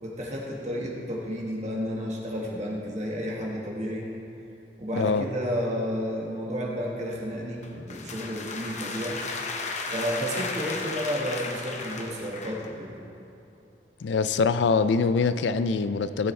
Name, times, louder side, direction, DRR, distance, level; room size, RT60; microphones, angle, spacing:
voice 1, 0.0-4.1 4.8-9.2 9.9-13.0, equal, 40° right, -2 dB, 1.6 m, -31 dB
voice 2, 4.9-5.3 14.0-16.3, left 4 dB, 80° left, 12 dB, 0.4 m, -24 dB
sound 1, 7.6-12.7, left 3 dB, 40° left, 0.8 m, -35 dB
15.5 x 7.8 x 3.3 m, 2.8 s
head